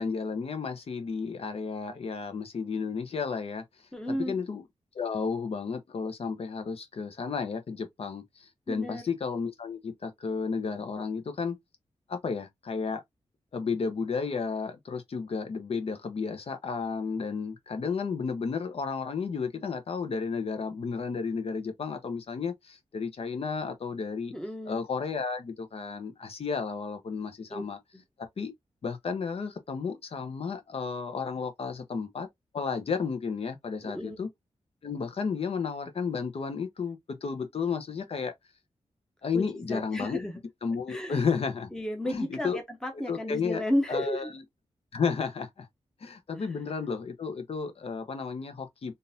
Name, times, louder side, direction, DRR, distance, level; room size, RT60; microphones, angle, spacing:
voice 1, 0.0-3.6 4.1-4.6 4.9-11.6 12.1-13.0 13.5-24.3 24.7-27.8 28.4-28.5 28.8-32.3 32.5-34.3 34.8-38.3 39.2-40.2 40.6-41.7 42.0-42.6 43.1-44.4 44.9-45.7 46.0-48.9, left 5 dB, 60° left, 0.9 m, -32 dB
voice 2, 3.9-4.4 8.7-9.0 24.3-24.9 27.5-27.6 27.9-28.0 33.8-34.2 39.3-40.4 40.9-41.2 41.7-44.3 46.3-46.5, equal, 5° left, 0.8 m, -33 dB
3.7 x 2.6 x 2.7 m
wide cardioid pair, 115°, 12 cm